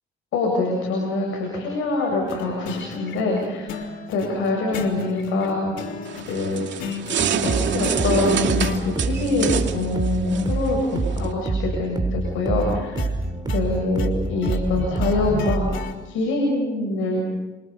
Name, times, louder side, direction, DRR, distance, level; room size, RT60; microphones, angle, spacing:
voice 1, 0.3-3.8 4.1-5.7 6.3-6.9 7.4-13.0 13.5-15.7 16.0-17.4, left 2 dB, 90° left, 0 dB, 7.4 m, -24 dB
sound 1, 2.3-8.9 12.6-16.0, left 6 dB, 75° left, 3.5 m, -35 dB
sound 2, 6.1-11.3, right 8 dB, 65° right, 2.4 m, -27 dB
sound 3, 7.2-15.8, right 3 dB, 20° right, 4.1 m, -27 dB
29.0 x 27.0 x 5.4 m, 1.1 s
cardioid pair, 90°, 20 cm